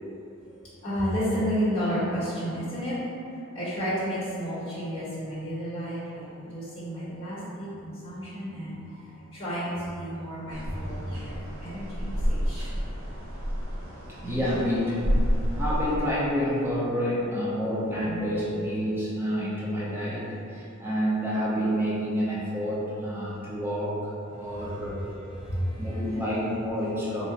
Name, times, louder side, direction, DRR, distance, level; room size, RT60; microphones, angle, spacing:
voice 1, 0.8-2.9 3.5-12.7 24.3-24.9 25.3-26.3, equal, 25° left, -10 dB, 1.5 m, -32 dB
sound 1, 10.5-16.0, equal, 85° right, 0.7 m, -29 dB
voice 2, 14.2-15.2 15.5-25.1 25.8-27.3, equal, 10° right, -8 dB, 0.6 m, -28 dB
3.0 x 2.6 x 3.9 m, 2.7 s
head